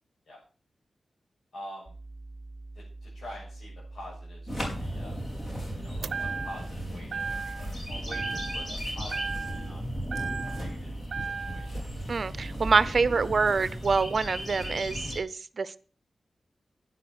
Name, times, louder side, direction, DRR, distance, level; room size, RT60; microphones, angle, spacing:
voice 1, 1.5-1.9 2.7-5.2 5.7-9.8 10.4-10.9 11.2-11.8, left 1 dB, 75° left, -7 dB, 7.4 m, -46 dB
sound 1, 1.9-13.3, right 2 dB, 15° right, 4.4 m, -45 dB
sound 2, 4.5-15.2, equal, 35° left, 4.6 m, -36 dB
sound 3, 6.0-6.8 7.1-7.8 8.1-8.8 9.1-10.7 11.1-11.7, right 5 dB, 80° right, 0.6 m, -35 dB
voice 2, 12.1-15.8, right 4 dB, 45° right, 17 dB, 0.7 m, -26 dB
12.0 x 10.0 x 6.1 m, 0.40 s
wide cardioid pair, 170°, 0 cm